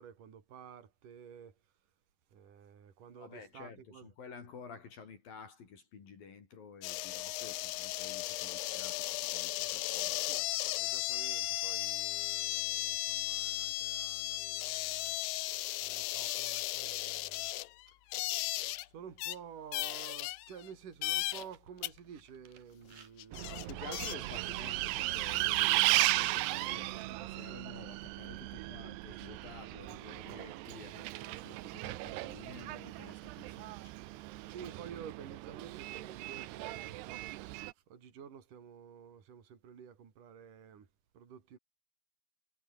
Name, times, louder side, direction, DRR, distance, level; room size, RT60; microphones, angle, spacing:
voice 1, 0.0-1.7 2.3-4.1 9.6-9.8 10.3-10.5 10.8-15.2 15.8-17.5 17.9-18.0 18.8-23.9 34.5-40.9 41.1-41.6, right 8 dB, 55° right, 4.7 m, -51 dB
voice 2, 3.1-10.3 10.8-10.9 23.4-34.0, left 6 dB, 60° left, 5.3 m, -51 dB
sound 1, 6.8-18.8 19.2-19.4 19.7-20.7 21.0-21.5 21.8-21.9 22.9-23.0 23.2-24.1, left 18 dB, 85° left, 2.9 m, -36 dB
Bus, 23.3-37.7, right 18 dB, 90° right, 2.9 m, -36 dB
omnidirectional pair, 4.6 m